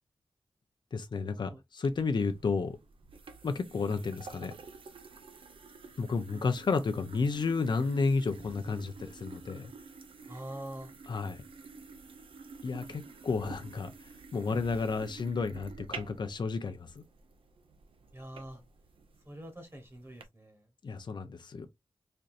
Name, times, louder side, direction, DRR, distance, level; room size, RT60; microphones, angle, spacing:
voice 1, 0.9-2.8 3.4-4.5 6.0-9.7 11.1-11.4 12.6-13.9 14.3-17.0 20.8-21.7, left 4 dB, 55° left, 0.5 m, -32 dB
sound 1, 1.8-20.2, right 4 dB, 80° right, 0.7 m, -49 dB
voice 2, 10.3-10.9 18.1-18.6 19.2-20.7, right 1 dB, 30° right, 1.2 m, -44 dB
4.3 x 2.6 x 2.5 m
wide cardioid pair, 95°, 9 cm